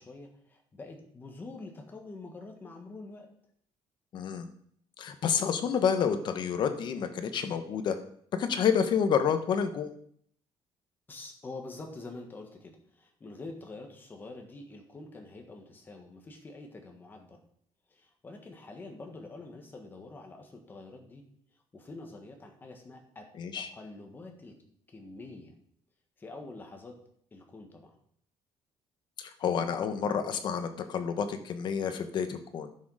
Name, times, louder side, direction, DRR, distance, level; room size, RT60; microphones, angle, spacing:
voice 1, 0.0-3.3 11.1-17.4 17.9-21.2 21.7-23.3 23.5-24.6 24.9-25.5 26.2-27.0 27.3-28.0, left 2 dB, 20° left, 3 dB, 1.6 m, -46 dB
voice 2, 4.1-4.5 5.0-8.0 8.4-9.9 23.4-23.7 29.2-32.7, left 7 dB, 45° left, 8 dB, 1.0 m, -29 dB
11.5 x 6.6 x 4.9 m, 0.63 s
cardioid pair, 180°, 10 cm